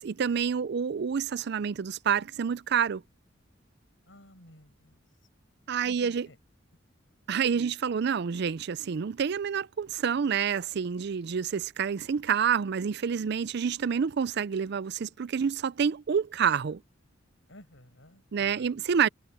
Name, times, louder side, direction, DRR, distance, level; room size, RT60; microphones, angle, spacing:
voice 1, 0.0-3.0 5.7-6.3 7.3-16.8 18.3-19.1, right 7 dB, 60° right, 0.4 m, -28 dB
voice 2, 4.1-5.0 5.8-6.4 7.5-7.7 17.5-18.8, left 1 dB, 80° left, 7.5 m, -54 dB
head